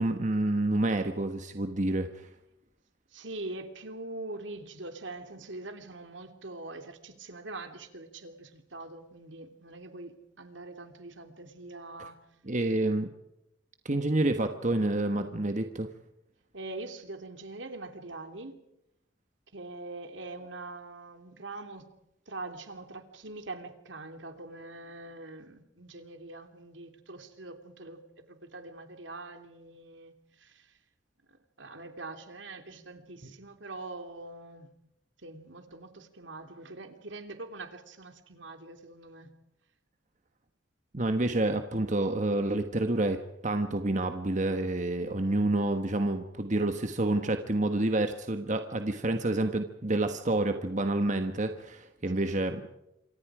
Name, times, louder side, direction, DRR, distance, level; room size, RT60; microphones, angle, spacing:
voice 1, 0.0-2.3 12.5-13.1 13.8-15.9 40.9-52.6, right 2 dB, 40° right, 7 dB, 1.4 m, -28 dB
voice 2, 3.1-12.2 16.5-18.5 19.5-21.9 22.3-28.0 28.3-30.7 31.3-34.7 35.2-39.3 52.1-52.4, right 2 dB, 75° right, 6 dB, 3.0 m, -43 dB
27.5 x 24.5 x 5.0 m, 0.85 s
head